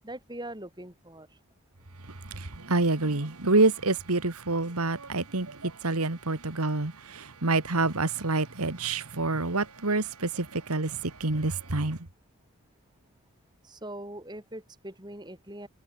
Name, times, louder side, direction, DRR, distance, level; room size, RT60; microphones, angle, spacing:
voice 1, 0.0-1.3 13.6-15.7, right 1 dB, 20° right, 6.3 m, -41 dB
voice 2, 2.3-12.0, right 3 dB, 90° right, 2.1 m, -27 dB
head